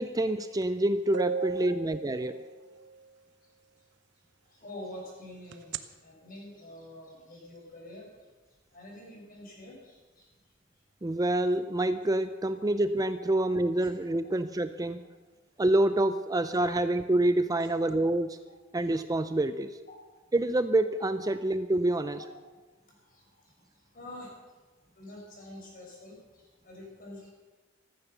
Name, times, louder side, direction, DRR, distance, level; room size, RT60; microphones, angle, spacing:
voice 1, 0.0-2.4 11.0-15.0 15.6-18.4 18.7-19.7 20.3-22.2, right 1 dB, 20° right, 11 dB, 0.5 m, -27 dB
sound 1, 0.6-0.7 1.1-2.9 5.5-5.8, right 6 dB, 60° right, 0.8 m, -34 dB
voice 2, 4.5-8.1 8.7-10.3 14.1-14.2 16.7-16.8 17.6-17.7 23.1-23.5 23.9-24.3 24.9-27.3, left 1 dB, 45° left, -2 dB, 6.3 m, -47 dB
15.0 x 14.0 x 6.8 m, 1.3 s
head